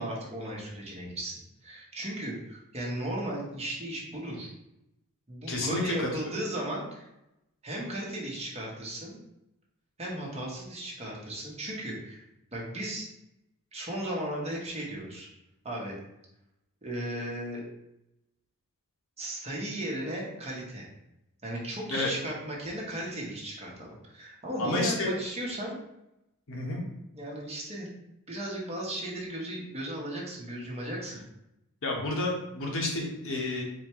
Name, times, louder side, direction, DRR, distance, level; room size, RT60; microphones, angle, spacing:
voice 1, 0.0-4.5 5.3-7.1 7.6-9.2 10.0-12.2 12.5-13.1 13.7-15.3 15.6-16.0 16.8-17.6 19.2-20.9 21.4-25.8 27.1-27.9 28.3-31.2, right 1 dB, 30° right, -3 dB, 1.0 m, -36 dB
voice 2, 5.5-6.1 21.9-22.1 24.6-25.2 26.5-26.8 31.8-33.6, left 2 dB, 65° left, -1 dB, 1.0 m, -30 dB
4.3 x 2.2 x 4.5 m, 0.87 s
head